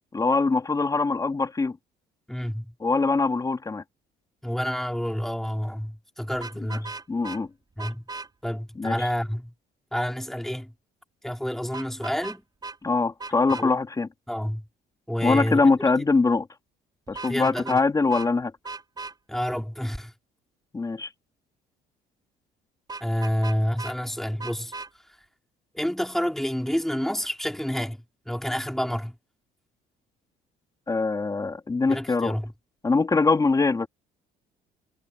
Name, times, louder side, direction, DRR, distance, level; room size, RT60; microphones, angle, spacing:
voice 1, 0.1-1.8 2.8-3.8 6.6-6.7 7.1-7.5 8.8-8.9 12.8-14.1 15.2-16.5 17.1-18.5 20.7-21.1 30.9-32.3 32.8-33.9, left 3 dB, 20° left, 3.0 m, -23 dB
voice 2, 2.3-2.7 4.4-6.9 7.8-8.0 8.4-9.5 9.9-10.7 11.2-12.4 13.5-13.7 14.3-14.6 15.1-15.6 17.3-17.8 19.3-20.1 23.0-24.7 25.7-29.2 31.9-32.5, equal, ahead, 3.5 m, -29 dB
Vehicle horn car horn honking, 6.3-7.4 7.8-8.3 11.7-12.4 12.6-12.8 13.2-13.6 17.1-17.8 18.1-18.3 18.6-19.1 22.9-23.9 24.4-24.9, right 3 dB, 25° right, 6.1 m, -37 dB
cardioid pair, 110°, 17 cm